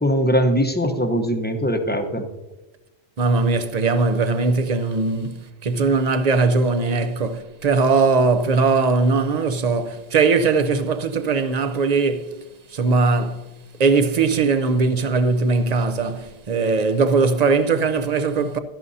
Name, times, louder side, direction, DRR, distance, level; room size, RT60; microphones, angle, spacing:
voice 1, 0.0-2.3, equal, 10° left, 0.8 m, -21 dB
voice 2, 3.2-12.3 12.7-13.4 13.8-18.6, right 4 dB, 40° right, 0.7 m, -20 dB
16.5 x 12.5 x 2.7 m
omnidirectional pair, 1.1 m